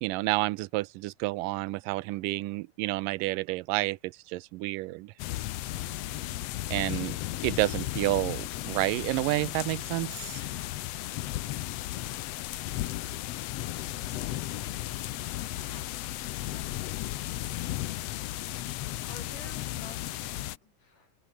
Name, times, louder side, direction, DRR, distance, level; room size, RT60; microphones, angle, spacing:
voice 1, 0.0-5.1 6.7-7.2 7.4-10.5, right 20 dB, 85° right, 2.2 m, -30 dB
sound 1, 5.2-20.6, left 15 dB, 85° left, 1.4 m, -35 dB
voice 2, 15.5-15.9 16.5-16.7 19.0-21.2, left 4 dB, 70° left, 8.4 m, -51 dB
open air
omnidirectional pair, 3.9 m